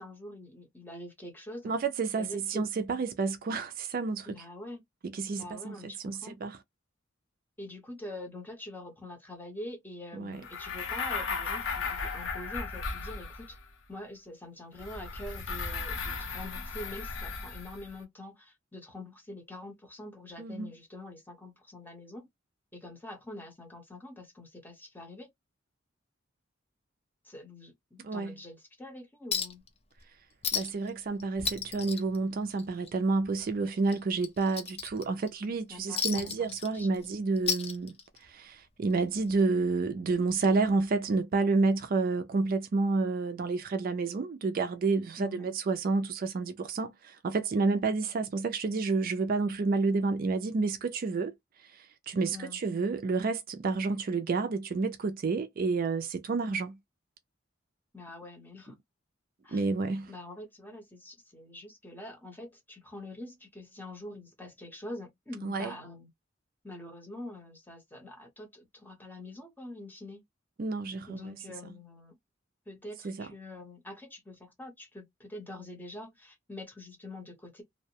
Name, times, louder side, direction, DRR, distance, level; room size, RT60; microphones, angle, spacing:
voice 1, 0.0-1.7 2.2-2.6 4.3-4.8 5.3-6.4 7.6-13.6 13.9-22.3 22.7-25.3 27.2-29.7 35.7-37.1 45.2-45.6 52.3-52.6 57.9-58.8 59.4-59.6 60.1-66.1 66.6-70.2 71.1-72.2 72.7-77.6, left 1 dB, 10° left, 0.9 m, -45 dB
voice 2, 1.6-4.3 5.1-5.8 6.0-6.6 10.1-10.4 20.4-20.7 28.0-28.3 30.5-37.9 38.2-51.3 51.6-56.8 59.5-60.1 65.4-65.7 70.6-71.3 73.0-73.3, right 3 dB, 45° right, 0.4 m, -30 dB
sound 1, 10.4-13.7 14.8-17.9, left 4 dB, 70° left, 0.7 m, -36 dB
Chink clink, 29.3-29.7 30.0-30.1 30.4-30.9 31.2-32.9 33.2-33.4 33.9-35.3 36.0-37.1 37.4-38.3 39.4-39.5, left 6 dB, 30° left, 0.5 m, -33 dB
2.6 x 2.1 x 2.8 m
head